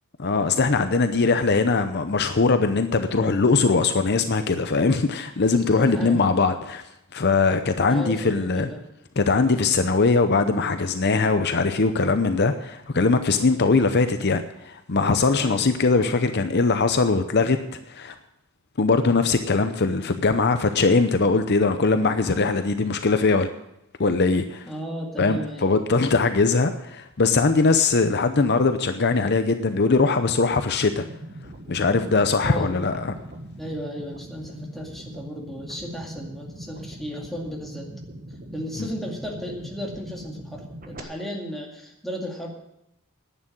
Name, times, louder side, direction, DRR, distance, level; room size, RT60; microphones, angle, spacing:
voice 1, 0.2-6.8 7.1-8.7 9.2-17.6 17.9-18.1 18.8-23.5 24.0-24.7 25.2-31.0 31.7-33.1, left 4 dB, 50° left, 9 dB, 0.7 m, -21 dB
voice 2, 5.7-6.3 7.9-8.8 15.4-15.6 24.7-25.9 32.4-32.7 33.6-37.9 38.5-42.5, equal, ahead, -1 dB, 2.2 m, -34 dB
sound 1, 31.0-41.0, right 1 dB, 40° right, 1.5 m, -41 dB
11.0 x 9.1 x 8.6 m, 0.84 s
head